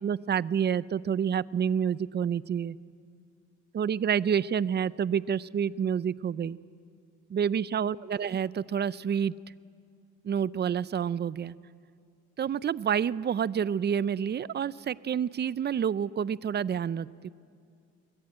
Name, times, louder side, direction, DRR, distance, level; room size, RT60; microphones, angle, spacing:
voice 1, 0.0-2.8 3.7-6.6 7.3-9.3 10.2-11.5 12.4-17.3, right 8 dB, 35° right, 19 dB, 0.5 m, -28 dB
23.5 x 21.5 x 8.8 m, 2.4 s
cardioid pair, 90°, 30 cm